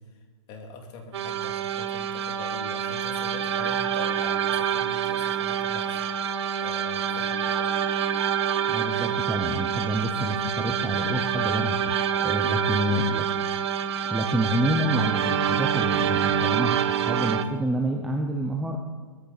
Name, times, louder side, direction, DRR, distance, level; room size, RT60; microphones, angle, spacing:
voice 1, 0.5-7.7 10.0-10.1 12.1-12.6, left 3 dB, 25° left, 2 dB, 2.2 m, -43 dB
sound 1, 1.1-17.4, right 8 dB, 50° right, 1.0 m, -26 dB
voice 2, 8.7-12.0 12.2-13.2 14.1-18.8, equal, ahead, 1 dB, 0.6 m, -28 dB
19.5 x 14.5 x 4.0 m, 1.5 s
hypercardioid pair, 160°, 18 cm